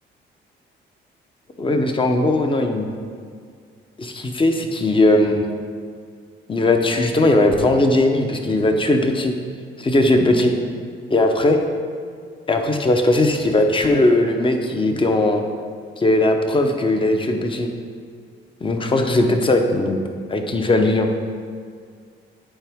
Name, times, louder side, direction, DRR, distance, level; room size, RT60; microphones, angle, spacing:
voice 1, 1.6-2.9 4.0-5.4 6.5-9.3 9.8-10.5 11.1-11.6 12.5-15.4 16.0-17.7 18.6-20.0 20.3-21.1, left 2 dB, 25° left, 4 dB, 0.8 m, -18 dB
8.7 x 4.5 x 3.6 m, 2.1 s
cardioid pair, 90°, 20 cm